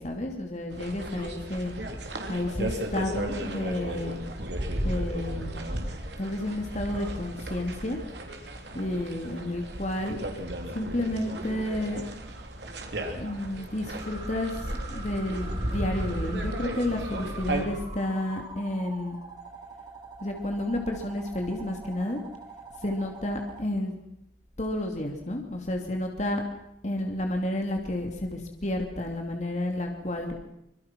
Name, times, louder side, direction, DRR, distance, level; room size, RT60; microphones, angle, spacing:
voice 1, 0.0-1.7 2.3-4.2 4.8-5.7 6.2-8.0 8.7-10.2 10.7-12.0 13.2-19.2 20.2-22.2 22.8-24.0 24.6-26.4 26.8-30.4, left 1 dB, 40° left, 2 dB, 2.7 m, -31 dB
sound 1, 0.7-17.6, right 1 dB, 75° right, 3.4 m, -35 dB
sound 2, 14.0-23.6, right 4 dB, 25° right, 3.4 m, -45 dB
25.0 x 22.5 x 6.1 m, 0.79 s
head